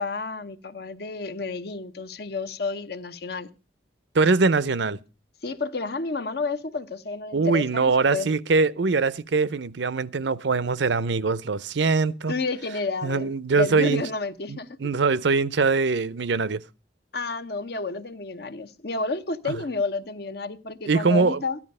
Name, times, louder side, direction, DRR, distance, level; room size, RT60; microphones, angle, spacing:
voice 1, 0.0-3.5 5.4-8.3 12.3-14.7 17.1-21.6, left 3 dB, 55° left, 0.9 m, -30 dB
voice 2, 4.1-5.0 7.3-12.3 13.0-14.0 14.5-16.6 20.9-21.4, right 4 dB, 70° right, 0.6 m, -22 dB
13.5 x 11.0 x 5.4 m
head